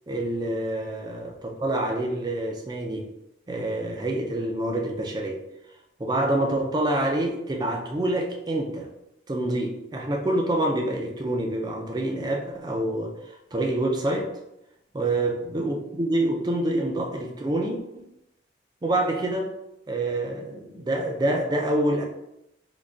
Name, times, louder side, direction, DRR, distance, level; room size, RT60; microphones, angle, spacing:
voice 1, 0.1-3.1 3.5-5.4 6.0-8.9 9.3-14.3 14.9-18.1 18.8-19.5 19.9-22.0, right 1 dB, 20° right, 1 dB, 0.4 m, -27 dB
3.8 x 2.6 x 2.4 m, 0.86 s
head